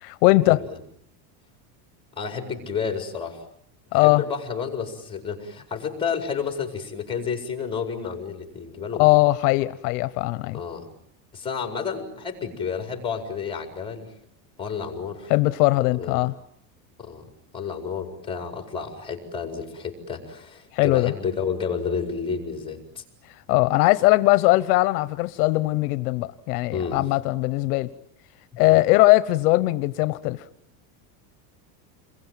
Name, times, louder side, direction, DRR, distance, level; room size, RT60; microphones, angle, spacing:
voice 1, 0.0-0.6 3.9-4.2 9.0-10.6 15.3-16.3 20.7-21.1 23.5-27.9 28.6-30.4, left 20 dB, 65° left, 14 dB, 1.1 m, -20 dB
voice 2, 2.1-3.5 3.9-9.1 10.5-10.9 11.3-14.1 14.6-15.3 16.0-16.2 17.0-17.2 17.5-23.0 26.7-27.0 28.7-28.8, left 6 dB, 10° left, 4 dB, 4.8 m, -31 dB
28.5 x 22.0 x 9.2 m, 0.71 s
cardioid pair, 170°, 47 cm